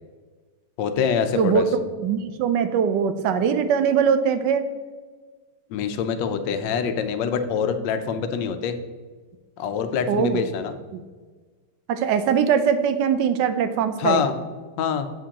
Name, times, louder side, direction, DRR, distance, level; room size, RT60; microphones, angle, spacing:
voice 1, 0.8-1.6 5.7-8.8 9.6-10.8 14.0-14.4 14.8-15.1, left 6 dB, 85° left, 8 dB, 1.3 m, -25 dB
voice 2, 2.0-4.6 10.1-10.4 10.9-11.0 11.9-14.2, right 7 dB, 80° right, 9 dB, 1.2 m, -21 dB
8.3 x 7.4 x 2.9 m, 1.4 s
omnidirectional pair, 1.9 m